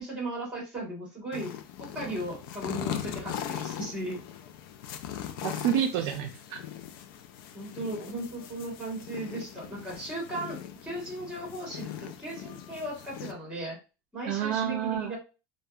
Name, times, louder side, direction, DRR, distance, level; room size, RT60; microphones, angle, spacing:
voice 1, 0.0-1.5 1.8-4.2 7.5-13.8 14.1-15.2, right 1 dB, 10° right, -3 dB, 1.3 m, -37 dB
sound 1, 1.3-13.3, left 10 dB, 75° left, 0.4 m, -40 dB
voice 2, 5.4-6.6 14.3-15.1, right 9 dB, 60° right, 3 dB, 0.4 m, -29 dB
2.6 x 2.2 x 2.3 m, 0.31 s
cardioid pair, 175°, 12 cm